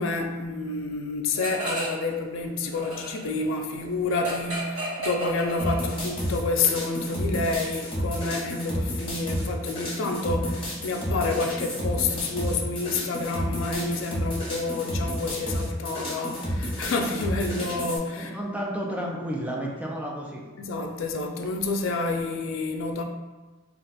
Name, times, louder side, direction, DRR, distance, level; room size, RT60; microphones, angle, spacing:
voice 1, 0.0-18.3 20.6-23.0, left 3 dB, 65° left, 3 dB, 0.4 m, -29 dB
sound 1, 1.4-2.1 2.4-6.2, right 1 dB, 75° right, 1.3 m, -33 dB
sound 2, 5.6-18.0, equal, 25° left, 0.8 m, -31 dB
voice 2, 18.2-20.4, equal, 5° right, -2 dB, 0.4 m, -31 dB
2.4 x 2.2 x 3.9 m, 1.2 s
head